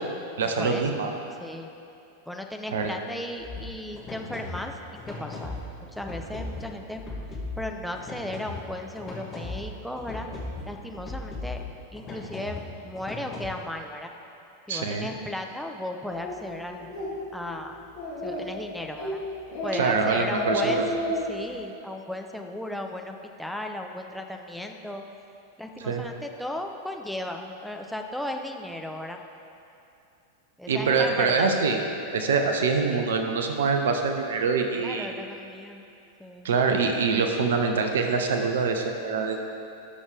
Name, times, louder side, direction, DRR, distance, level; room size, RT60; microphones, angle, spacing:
voice 1, 0.4-1.1 2.7-2.9 14.7-15.1 19.7-20.8 25.8-26.0 30.7-31.8 32.1-35.1 36.4-39.4, right 4 dB, 60° right, 4 dB, 0.9 m, -24 dB
voice 2, 2.3-4.8 5.1-5.6 5.9-7.0 7.6-10.3 10.7-11.6 11.9-14.1 14.7-16.9 17.3-17.8 18.2-19.2 19.6-20.8 21.3-25.0 25.6-29.2 30.6-31.5 32.4-32.5 32.8-33.0 34.8-35.8 36.2-36.5, left 1 dB, ahead, 2 dB, 0.8 m, -35 dB
sound 1, 3.4-13.5, left 2 dB, 25° left, 2.3 m, -38 dB
Speech, 16.2-16.3 16.8-17.1 17.5-17.6 17.9-18.6 19.0-19.2 19.5-19.9 20.2-21.3, equal, 55° left, 2.5 m, -30 dB
19.0 x 6.4 x 3.4 m, 2.8 s
figure-of-eight pair, 90°, 0 cm